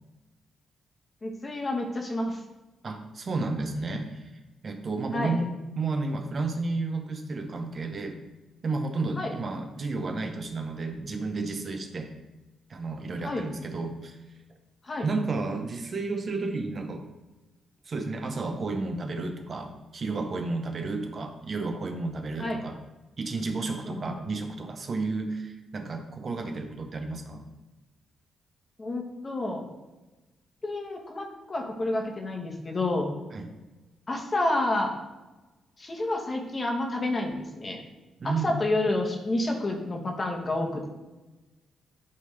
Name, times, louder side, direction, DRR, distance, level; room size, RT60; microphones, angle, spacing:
voice 1, 1.2-2.4 5.1-5.3 9.2-9.3 13.2-13.4 14.8-15.1 22.4-22.6 23.9-24.2 28.8-29.7 30.6-33.1 34.1-34.9 35.8-37.8 38.2-40.9, left 2 dB, 30° left, 1 dB, 1.1 m, -29 dB
voice 2, 2.8-4.3 4.6-8.2 8.6-12.1 12.7-14.2 15.0-17.0 17.8-22.8 23.2-27.5 33.3-33.5 38.2-38.6, right 3 dB, 40° right, 5 dB, 0.7 m, -32 dB
9.4 x 3.4 x 3.2 m, 1.1 s
cardioid pair, 105°, 0 cm